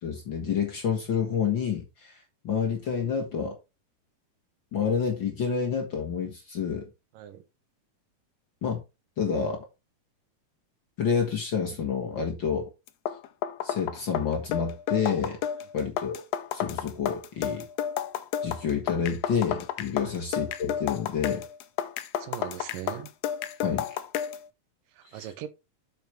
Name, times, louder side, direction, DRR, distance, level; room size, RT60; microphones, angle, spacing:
voice 1, 0.0-2.2 2.4-3.6 4.7-6.9 8.6-8.8 9.2-9.7 11.0-12.7 13.6-15.4 15.7-16.2 16.5-17.6 18.4-21.4 23.6-23.8, left 6 dB, 45° left, 1.6 m, -28 dB
voice 2, 7.1-7.4 20.0-20.1 22.2-23.1 24.9-25.5, right 12 dB, 90° right, 2.6 m, -40 dB
sound 1, 12.9-24.4, left 9 dB, 80° left, 1.4 m, -32 dB
7.7 x 7.1 x 3.4 m
omnidirectional pair, 3.8 m